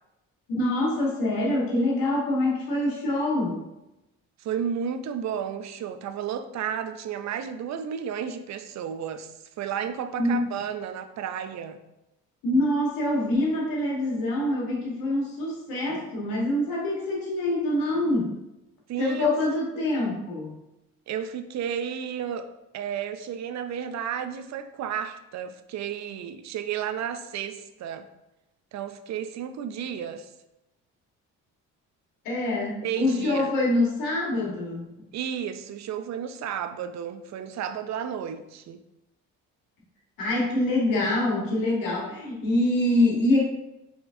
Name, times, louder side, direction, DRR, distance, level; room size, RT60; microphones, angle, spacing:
voice 1, 0.6-3.6 10.2-10.4 12.4-18.3 19.0-20.6 32.2-34.9 40.2-43.4, left 1 dB, 85° left, 1.4 m, -25 dB
voice 2, 4.4-11.8 18.9-19.4 19.8-19.9 21.1-28.1 28.7-30.3 32.8-33.5 35.1-38.8, right 8 dB, 55° right, 0.5 m, -32 dB
4.9 x 3.4 x 2.6 m
cardioid pair, 80°, 33 cm